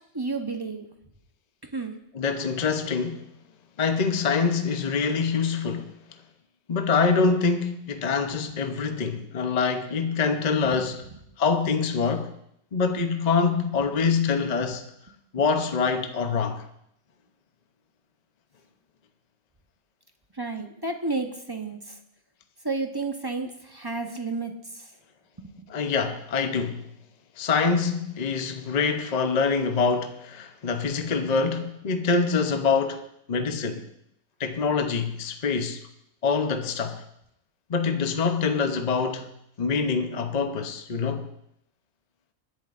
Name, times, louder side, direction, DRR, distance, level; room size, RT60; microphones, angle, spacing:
voice 1, 0.1-0.9 1.7-1.9 10.7-10.8 14.0-14.1 20.4-21.9 22.6-24.9 25.4-25.7, right 3 dB, 20° right, 0.9 m, -31 dB
voice 2, 2.1-3.2 3.8-5.9 6.7-11.1 11.4-12.3 12.7-14.8 15.3-16.6 25.7-26.9 27.4-33.8 34.4-35.8 36.2-37.0 37.7-39.3 39.6-41.3, left 5 dB, 40° left, 0.8 m, -25 dB
24.0 x 11.0 x 2.5 m
omnidirectional pair, 1.3 m